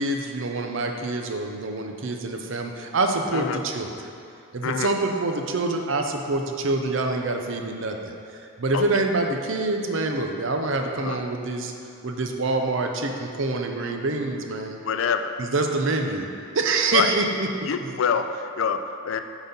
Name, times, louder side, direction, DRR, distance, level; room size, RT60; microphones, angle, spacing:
voice 1, 0.0-4.1 4.5-8.0 8.6-11.7 12.0-14.8 15.4-16.3 16.5-18.0, right 2 dB, 60° right, 3 dB, 0.6 m, -26 dB
voice 2, 14.8-15.3 16.9-17.2 17.6-19.2, left 6 dB, 60° left, 8 dB, 0.4 m, -26 dB
8.2 x 4.0 x 5.4 m, 2.5 s
head